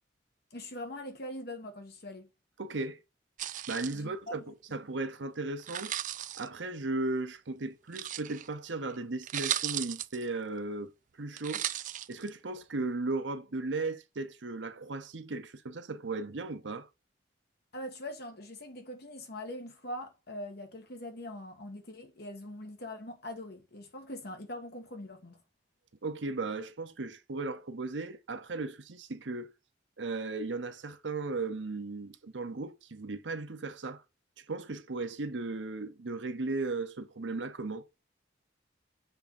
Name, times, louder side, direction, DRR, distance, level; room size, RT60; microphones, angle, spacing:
voice 1, 0.5-2.3 3.9-4.4 17.7-25.4, left 1 dB, 60° left, 1.5 m, -42 dB
voice 2, 2.6-3.0 3.7-5.9 6.4-10.9 11.2-11.7 12.1-16.9 26.0-29.5 30.0-34.0 34.4-37.8, right 3 dB, 75° right, 0.9 m, -36 dB
sound 1, 3.4-4.0 5.6-6.5 7.9-8.5 8.9-9.0 9.2-10.2 11.4-12.3, right 12 dB, 45° right, 0.4 m, -35 dB
6.7 x 3.5 x 4.2 m
head